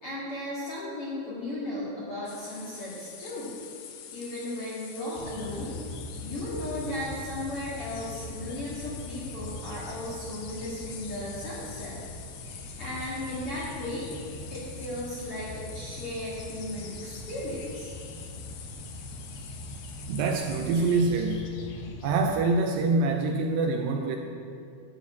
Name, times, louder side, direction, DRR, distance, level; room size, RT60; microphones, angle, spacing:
voice 1, 0.0-3.5 4.1-5.8 6.2-12.0 12.4-14.1 14.5-17.9, left 1 dB, 50° left, -8 dB, 1.7 m, -36 dB
sound 1, 2.3-21.0, left 7 dB, 90° left, 3.4 m, -46 dB
sound 2, 5.1-22.4, left 1 dB, 70° left, 2.7 m, -42 dB
voice 2, 20.1-21.5 22.0-24.2, right 3 dB, 80° right, 3 dB, 2.5 m, -25 dB
12.0 x 4.7 x 8.2 m, 2.4 s
omnidirectional pair, 5.3 m